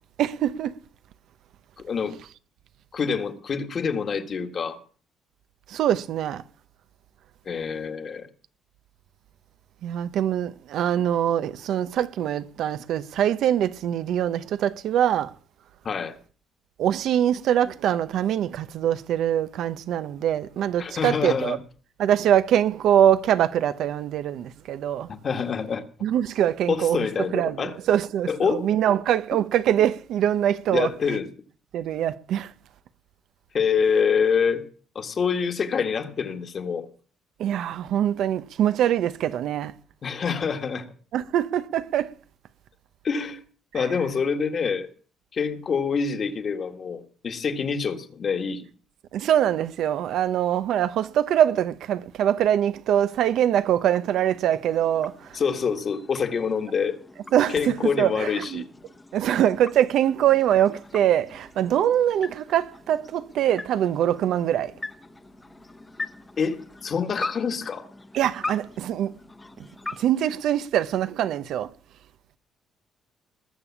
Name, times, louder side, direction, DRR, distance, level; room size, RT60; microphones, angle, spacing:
voice 1, 0.2-0.7 5.7-6.4 9.8-15.3 16.8-21.6 22.0-25.1 26.0-27.1 27.3-30.9 31.7-32.5 37.4-39.7 41.1-42.1 43.8-43.9 49.1-55.1 57.3-58.6 59.1-64.7 68.1-69.1 70.0-71.7, right 10 dB, 65° right, 0.8 m, -23 dB
voice 2, 1.8-2.2 2.9-4.8 7.4-8.3 15.8-16.2 20.8-21.6 25.1-25.8 26.7-27.7 28.2-28.7 30.7-31.3 33.5-34.7 34.9-36.9 40.0-40.8 43.0-43.4 43.7-44.9 45.3-48.6 55.3-57.0 57.5-58.7 66.4-67.9, left 6 dB, 35° left, 1.7 m, -26 dB
sound 1, 53.4-71.1, left 2 dB, 15° left, 1.1 m, -42 dB
20.0 x 6.9 x 7.2 m
cardioid pair, 145°, 0 cm